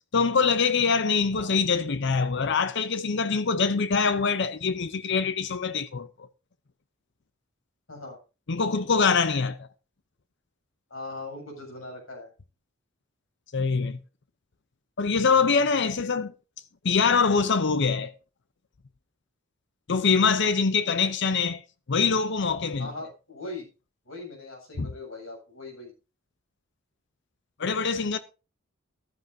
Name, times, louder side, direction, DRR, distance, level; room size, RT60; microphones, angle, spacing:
voice 1, 0.1-6.1 8.5-9.7 13.5-14.0 15.0-16.3 16.8-18.1 19.9-21.6 21.9-22.9 24.8-24.9 27.6-28.2, left 5 dB, 60° left, 0.7 m, -24 dB
voice 2, 7.9-8.2 10.9-12.3 22.8-23.7 24.0-25.9, left 2 dB, 75° left, 7.6 m, -40 dB
14.5 x 12.0 x 2.7 m
head